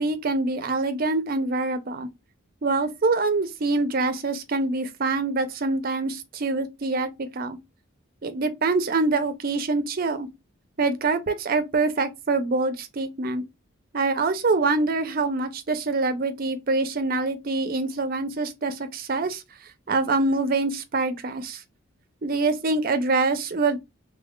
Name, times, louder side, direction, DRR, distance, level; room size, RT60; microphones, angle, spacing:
voice 1, 0.0-2.1 2.6-7.6 8.2-10.3 10.8-13.4 13.9-19.4 19.9-21.6 22.2-23.8, right 3 dB, 45° right, 0.5 m, -25 dB
3.2 x 2.3 x 3.5 m
head